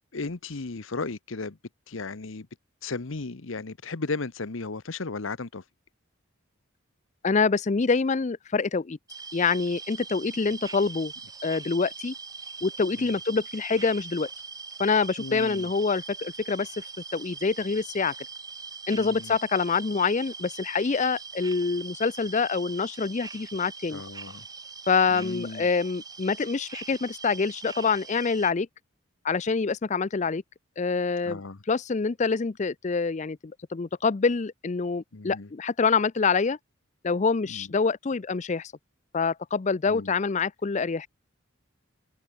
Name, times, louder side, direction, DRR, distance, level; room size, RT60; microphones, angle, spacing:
voice 1, 0.1-1.6 1.9-2.5 2.8-5.6 13.0-13.2 15.2-15.7 18.9-19.4 23.9-24.4 25.1-25.7 31.2-31.6 35.1-35.5 37.5-37.7 39.9-40.1, left 3 dB, 70° left, 1.0 m, -35 dB
voice 2, 7.2-9.0 9.3-11.1 11.4-12.1 12.6-14.3 14.8-16.8 17.1-18.1 18.9-24.0 24.9-28.7 29.2-30.4 30.8-31.4 31.7-36.6 37.0-38.7 39.1-41.1, left 4 dB, 35° left, 0.5 m, -26 dB
sound 1, 9.1-28.5, right 5 dB, 20° right, 1.5 m, -42 dB
open air
head